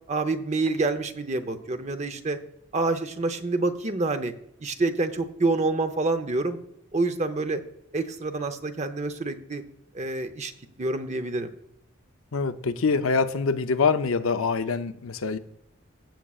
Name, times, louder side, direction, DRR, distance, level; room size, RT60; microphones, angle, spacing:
voice 1, 0.1-2.4 2.7-4.3 4.6-6.6 6.9-7.6 7.9-9.6 9.9-10.5 10.8-11.5, right 3 dB, 35° right, 0.7 m, -27 dB
voice 2, 12.3-15.4, left 4 dB, 90° left, 0.6 m, -25 dB
16.5 x 7.4 x 2.4 m
head